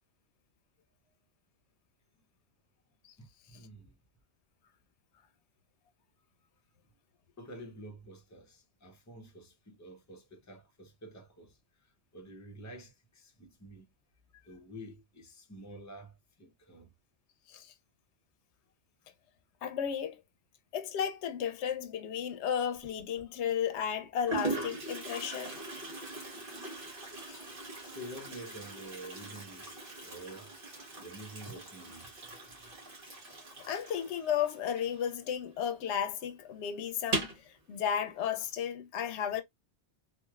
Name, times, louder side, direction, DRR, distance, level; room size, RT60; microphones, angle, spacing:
voice 1, 3.2-4.0 7.4-13.9 14.4-16.9 27.9-30.6 31.0-32.2 32.6-32.7, right 1 dB, 20° left, 0.6 m, -49 dB
voice 2, 19.6-20.2 20.7-25.6 27.3-27.4 33.6-39.4, left 8 dB, 80° left, 0.9 m, -34 dB
Toilet flush, 22.7-23.2 23.9-24.0 24.3-35.6 35.8-35.9 36.2-36.3 37.0-37.5, right 2 dB, 50° right, 1.4 m, -40 dB
3.1 x 2.4 x 2.3 m
omnidirectional pair, 1.2 m